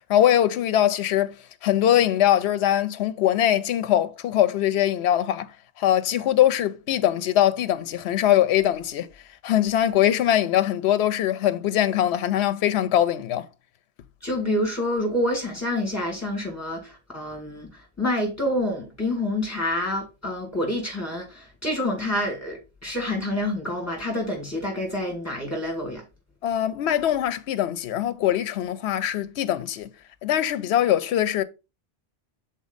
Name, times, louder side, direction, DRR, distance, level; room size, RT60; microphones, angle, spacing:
voice 1, 0.1-1.4 1.6-5.5 5.8-9.1 9.4-13.5 26.4-29.9 30.2-31.4, left 11 dB, 75° left, 0.8 m, -22 dB
voice 2, 14.2-17.7 18.0-26.0, left 1 dB, 15° left, 2.5 m, -27 dB
6.1 x 4.2 x 4.0 m
omnidirectional pair, 1.1 m